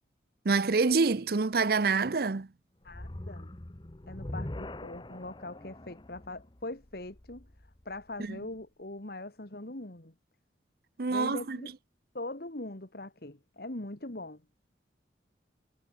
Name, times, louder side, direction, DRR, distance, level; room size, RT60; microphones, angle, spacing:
voice 1, 0.4-2.5 8.2-8.4 11.0-11.6, right 4 dB, 55° right, 0.7 m, -26 dB
voice 2, 2.8-3.5 4.1-7.5 7.9-10.1 11.1-11.7 12.1-14.4, left 2 dB, 55° left, 2.1 m, -41 dB
sound 1, 2.8-8.1, left 1 dB, 25° left, 1.0 m, -43 dB
head